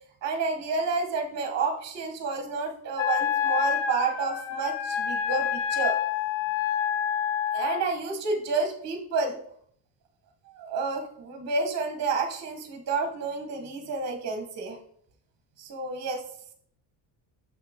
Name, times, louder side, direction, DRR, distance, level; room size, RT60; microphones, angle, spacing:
voice 1, 0.2-6.0 7.5-9.4 10.5-14.8 15.6-16.2, right 4 dB, 35° right, 5 dB, 1.0 m, -30 dB
Wind instrument woodwind instrument, 3.0-7.8, left 9 dB, 85° left, 0.9 m, -28 dB
6.5 x 5.7 x 3.5 m, 0.63 s
cardioid pair, 150°, 48 cm